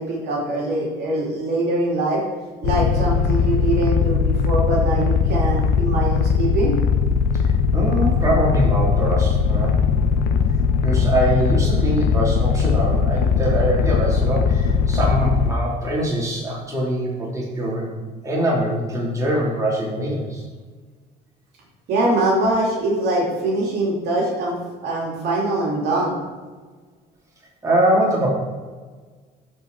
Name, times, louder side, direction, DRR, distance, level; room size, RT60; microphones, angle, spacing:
voice 1, 0.0-2.2 2.6-6.7 21.9-26.2, right 2 dB, 70° right, -3 dB, 2.8 m, -23 dB
sound 1, 2.6-15.5, left 6 dB, 80° left, 0.5 m, -19 dB
voice 2, 7.4-9.8 10.8-17.9 18.2-20.4 27.6-28.3, right 1 dB, 20° right, -5 dB, 3.1 m, -23 dB
12.0 x 4.8 x 4.7 m, 1.4 s
cardioid pair, 110°, 17 cm